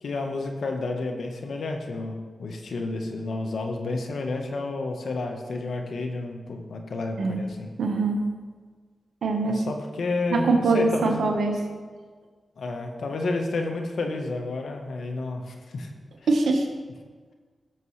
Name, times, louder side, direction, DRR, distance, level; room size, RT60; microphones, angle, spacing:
voice 1, 0.0-7.7 9.4-11.2 12.6-15.9, left 3 dB, 80° left, 3 dB, 1.3 m, -30 dB
voice 2, 7.8-8.2 9.2-9.6 10.3-11.5 16.3-16.7, right 3 dB, 85° right, 3 dB, 1.3 m, -23 dB
16.5 x 7.0 x 3.3 m, 1.5 s
cardioid pair, 45°, 0 cm